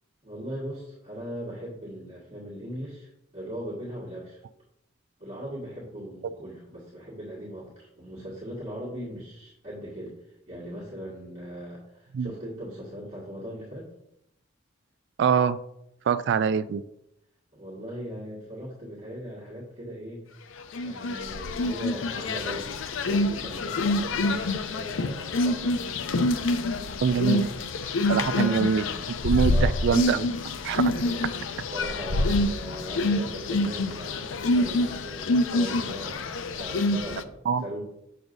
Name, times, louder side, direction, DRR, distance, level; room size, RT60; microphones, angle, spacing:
voice 1, 0.2-4.4 5.2-10.1 10.5-13.9 17.5-20.2 20.8-25.8 27.1-27.6 28.0-28.7 29.5-29.7 31.1-37.8, equal, 40° right, -8 dB, 1.8 m, -39 dB
voice 2, 15.2-15.6 16.1-16.8 27.0-27.5 28.1-28.8 29.2-30.3 30.6-30.8 37.5-37.6, right 6 dB, 60° right, 14 dB, 0.3 m, -24 dB
sound 1, 20.7-37.2, left 2 dB, 70° left, 0.5 m, -27 dB
7.0 x 6.3 x 2.6 m, 0.80 s
head